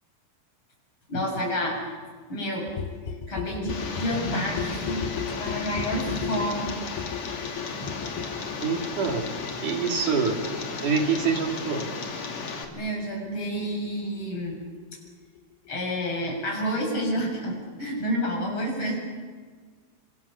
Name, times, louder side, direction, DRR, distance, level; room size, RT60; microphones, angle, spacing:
voice 1, 1.1-1.8 2.3-2.7 3.3-5.0 5.3-6.8 12.7-14.6 15.7-19.0, equal, 30° left, 0 dB, 7.9 m, -29 dB
sound 1, 2.7-14.2 14.5-14.6 14.8-14.9 15.1-15.2 15.4-15.5 15.7-15.8 16.0-16.1, left 8 dB, 75° left, 3.2 m, -36 dB
Tick, 3.7-12.6, left 4 dB, 45° left, 3.4 m, -34 dB
voice 2, 8.6-9.3 9.6-10.4 10.8-11.9, right 5 dB, 50° right, 2 dB, 4.0 m, -25 dB
30.0 x 26.0 x 7.1 m, 1.5 s
omnidirectional pair, 4.7 m